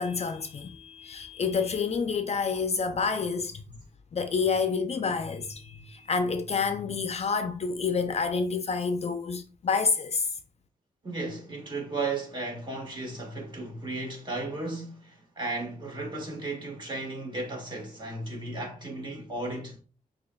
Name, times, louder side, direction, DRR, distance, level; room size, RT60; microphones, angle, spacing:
voice 1, 0.0-3.6 4.1-10.4, left 5 dB, 45° left, 0.5 m, -28 dB
voice 2, 11.0-19.8, right 2 dB, 30° right, 1.8 m, -35 dB
6.3 x 2.8 x 2.3 m
cardioid pair, 80°, 15 cm